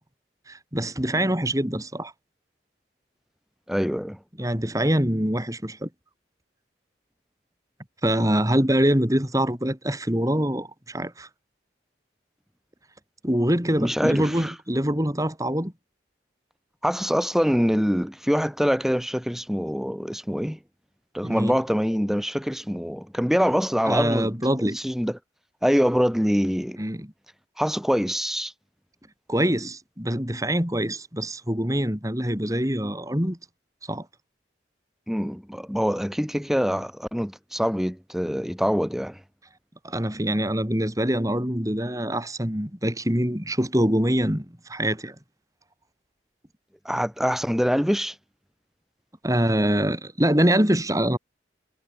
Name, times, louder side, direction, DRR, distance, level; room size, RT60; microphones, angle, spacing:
voice 1, 0.5-2.1 4.4-5.9 8.0-11.3 13.2-15.7 21.2-21.5 23.9-24.8 26.8-27.1 29.3-33.4 33.9-34.1 39.8-45.1 49.2-51.2, equal, 20° right, 4.0 m, -24 dB
voice 2, 3.7-4.2 13.8-14.5 16.8-20.6 21.1-25.2 25.6-26.8 27.6-28.5 35.1-39.2 46.8-48.1, equal, ahead, 5.1 m, -24 dB
head